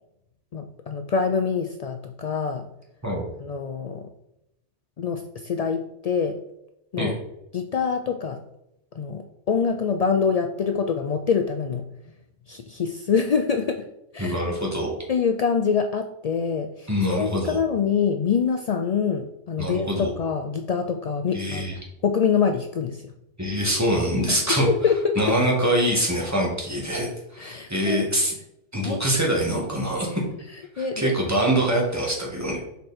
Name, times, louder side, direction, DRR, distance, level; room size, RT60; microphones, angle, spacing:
voice 1, 0.5-2.7 3.4-4.1 5.0-6.4 6.9-7.2 7.5-8.4 8.9-11.9 12.5-13.9 14.1-14.4 15.1-19.9 20.1-21.7 22.0-23.1 24.3-25.4 27.4-28.1 28.8-29.0 30.8-31.1, left 6 dB, 70° left, 6 dB, 0.3 m, -25 dB
voice 2, 14.2-15.0 16.9-17.6 19.6-20.1 21.3-21.7 23.4-24.7 25.2-28.3 28.7-30.2 30.8-32.6, equal, 15° right, -3 dB, 1.9 m, -24 dB
6.7 x 4.7 x 4.3 m, 0.85 s
omnidirectional pair, 1.2 m